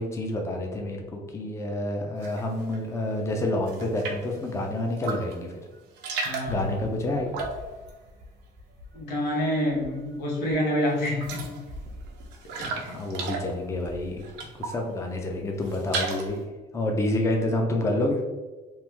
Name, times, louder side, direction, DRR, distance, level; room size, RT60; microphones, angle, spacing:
voice 1, 0.0-5.5 6.5-7.5 12.6-14.2 14.6-16.4 16.7-18.2, left 1 dB, 15° left, 1 dB, 0.5 m, -28 dB
sound 1, 2.2-2.8 3.2-4.4 4.9-5.5 5.7-9.2 9.4-10.1 10.5-10.6 10.9-14.9 15.3-16.4, right 4 dB, 90° right, 0.6 m, -36 dB
voice 2, 6.2-6.7 8.9-11.6 12.6-13.0, equal, 85° left, -1 dB, 0.9 m, -28 dB
2.9 x 2.0 x 3.4 m, 1.2 s
cardioid pair, 110°, 17 cm